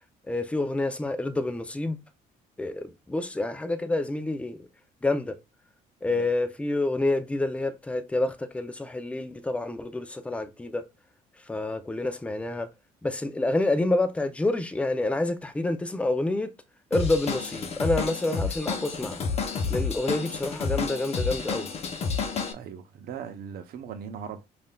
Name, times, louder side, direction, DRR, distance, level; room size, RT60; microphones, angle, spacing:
voice 1, 0.3-2.0 2.6-4.7 5.0-5.4 6.0-10.9 11.5-12.7 13.0-16.5 16.9-19.2 19.7-21.7, left 2 dB, 5° left, 0.4 m, -28 dB
Drum kit / Drum, 16.9-22.5, left 5 dB, 40° left, 0.7 m, -30 dB
voice 2, 22.5-24.5, right 7 dB, 65° right, 0.7 m, -39 dB
5.4 x 2.5 x 2.2 m
cardioid pair, 110°, 17 cm